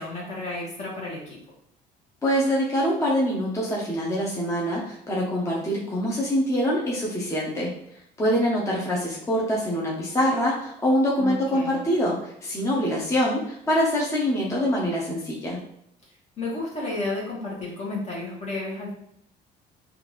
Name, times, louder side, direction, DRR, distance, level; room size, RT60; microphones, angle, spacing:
voice 1, 0.0-1.4 11.2-11.8 16.4-18.9, left 2 dB, 40° left, -4 dB, 1.2 m, -32 dB
voice 2, 2.2-7.7 8.2-15.6, equal, 15° left, -4 dB, 0.8 m, -24 dB
3.6 x 2.4 x 3.1 m, 0.74 s
cardioid pair, 110°, 17 cm